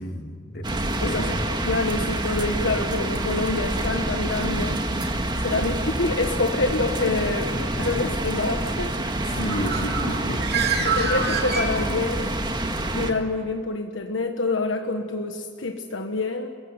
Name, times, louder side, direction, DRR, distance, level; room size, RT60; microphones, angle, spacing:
voice 1, 0.0-1.4 5.6-5.8 7.3-8.7 9.2-10.9, equal, 60° left, 4 dB, 2.7 m, -33 dB
sound 1, 0.6-13.1, right 1 dB, 25° right, 1.7 m, -27 dB
voice 2, 1.0-4.8 5.4-8.9 10.8-12.3 12.9-16.5, left 3 dB, 85° left, 4 dB, 1.4 m, -27 dB
Bird, 9.2-12.3, right 5 dB, 55° right, 3.1 m, -27 dB
29.0 x 16.0 x 9.7 m, 2.2 s
head